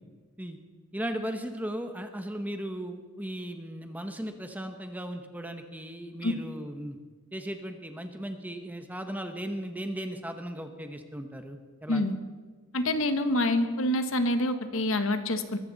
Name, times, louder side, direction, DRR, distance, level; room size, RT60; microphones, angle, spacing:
voice 1, 0.9-7.0 7.3-12.1, equal, 10° right, 6 dB, 1.1 m, -37 dB
voice 2, 12.7-15.6, left 1 dB, 65° left, 8 dB, 1.3 m, -26 dB
23.0 x 14.0 x 4.1 m, 1.4 s
head